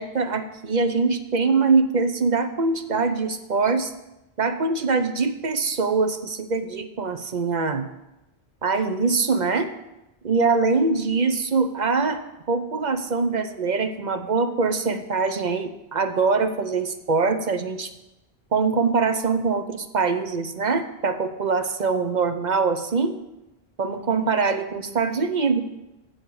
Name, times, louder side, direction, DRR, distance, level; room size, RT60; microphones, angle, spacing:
voice 1, 0.0-3.9 4.4-7.8 8.6-9.7 10.2-12.2 12.5-17.9 18.5-23.2 23.8-25.6, right 4 dB, 50° right, 9 dB, 0.8 m, -23 dB
15.5 x 6.5 x 4.8 m, 0.95 s
omnidirectional pair, 1.1 m